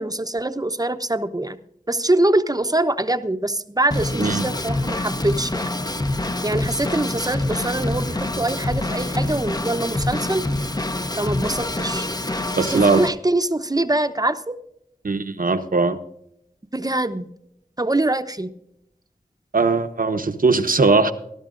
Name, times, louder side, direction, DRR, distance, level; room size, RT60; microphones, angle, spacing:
voice 1, 0.0-1.6 1.9-5.7 6.4-10.4 11.2-12.1 12.7-14.5 16.7-17.3 17.8-18.5, right 2 dB, 25° right, 10 dB, 0.8 m, -23 dB
Drum kit / Drum, 3.9-13.1, left 2 dB, 25° left, 0.7 m, -26 dB
voice 2, 4.1-4.5 12.5-13.0 15.0-16.0 19.5-21.1, right 3 dB, 65° right, 8 dB, 1.0 m, -19 dB
19.0 x 12.0 x 2.5 m, 0.77 s
wide cardioid pair, 50°, 16 cm